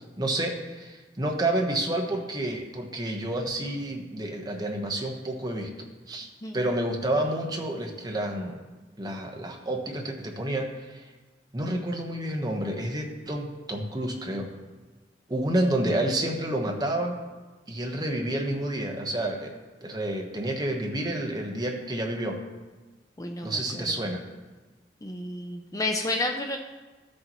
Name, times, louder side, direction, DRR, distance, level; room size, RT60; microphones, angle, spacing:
voice 1, 0.0-5.7 6.1-6.3 6.5-8.6 9.0-11.0 11.5-14.5 15.3-17.2 17.7-19.5 19.8-22.4 23.4-24.2, right 1 dB, 25° right, 1 dB, 1.1 m, -29 dB
voice 2, 23.2-23.8 25.0-26.6, left 2 dB, 20° left, 3 dB, 0.5 m, -31 dB
14.0 x 6.5 x 3.0 m, 1.3 s
head